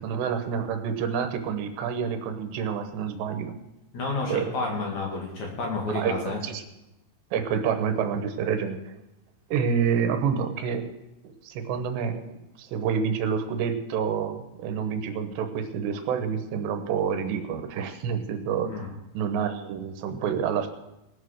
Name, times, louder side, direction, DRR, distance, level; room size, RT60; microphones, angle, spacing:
voice 1, 0.0-3.6 4.3-4.5 5.9-6.6 7.3-9.0 9.5-10.9 11.4-12.2 12.6-18.9 19.2-20.7, right 7 dB, 85° right, 7 dB, 3.3 m, -28 dB
voice 2, 3.9-6.4 18.6-18.9, left 2 dB, 50° left, -1 dB, 3.1 m, -30 dB
19.0 x 7.4 x 6.5 m, 0.92 s
omnidirectional pair, 4.9 m